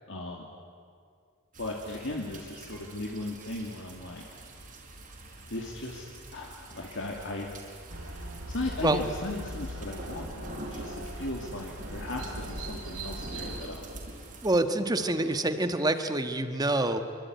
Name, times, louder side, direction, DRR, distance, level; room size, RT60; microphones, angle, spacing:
voice 1, 0.1-0.5 1.6-4.2 5.5-6.1 6.3-7.5 8.0-13.9 15.2-15.3, left 2 dB, 60° left, 0 dB, 2.6 m, -37 dB
sound 1, 1.5-14.6, right 1 dB, 40° right, 4.9 m, -45 dB
sound 2, 7.9-13.6, right 1 dB, 70° right, 4.6 m, -40 dB
voice 2, 14.4-17.0, right 2 dB, 20° right, 8 dB, 1.4 m, -26 dB
25.5 x 24.5 x 9.5 m, 2.2 s
head